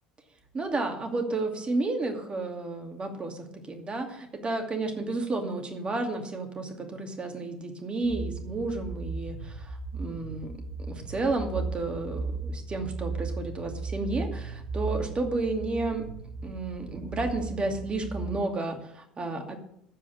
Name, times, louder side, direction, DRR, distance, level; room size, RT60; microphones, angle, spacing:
voice 1, 0.5-10.5 10.9-16.0 16.4-19.6, right 2 dB, 30° right, 3 dB, 2.5 m, -32 dB
sound 1, 8.0-18.4, right 4 dB, 70° right, 1.2 m, -36 dB
14.5 x 5.0 x 8.6 m, 0.72 s
figure-of-eight pair, 65°, 4 cm